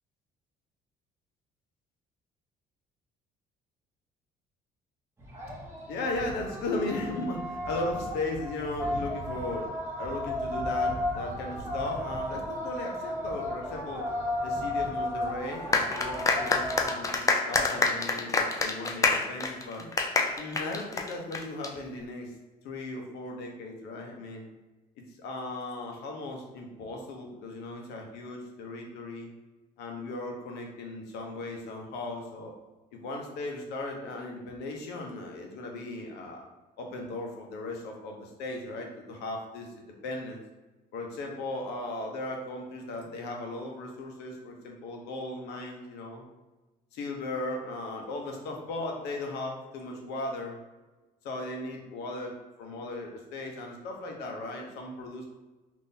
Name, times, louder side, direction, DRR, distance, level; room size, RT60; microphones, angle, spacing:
sound 1, 5.2-17.0, left 1 dB, 15° right, 0.8 m, -34 dB
voice 1, 5.9-9.7 10.0-14.1 14.4-19.9 20.4-22.3 22.6-24.5 25.1-29.3 29.8-32.5 32.9-36.5 36.8-40.4 40.9-46.2 46.9-50.6 51.2-55.3, left 2 dB, 85° left, 1 dB, 0.7 m, -37 dB
sound 2, 15.7-21.7, left 4 dB, 20° left, 0.4 m, -27 dB
3.5 x 2.6 x 2.6 m, 1.2 s
cardioid pair, 110°, 17 cm